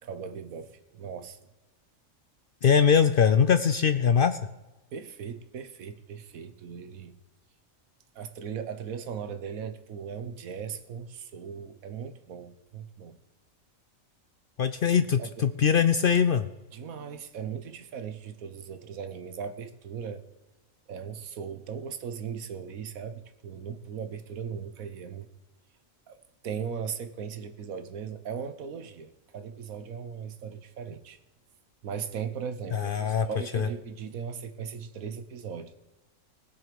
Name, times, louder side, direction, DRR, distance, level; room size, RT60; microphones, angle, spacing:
voice 1, 0.0-1.4 4.9-7.1 8.1-13.2 15.2-15.4 16.7-20.2 20.9-25.3 26.1-31.2 31.8-35.7, right 7 dB, 85° right, 11 dB, 1.4 m, -38 dB
voice 2, 2.6-4.4 14.6-16.5 32.7-33.3 33.5-33.7, left 7 dB, 60° left, 11 dB, 0.5 m, -22 dB
20.0 x 6.9 x 5.2 m, 1.1 s
omnidirectional pair, 1.4 m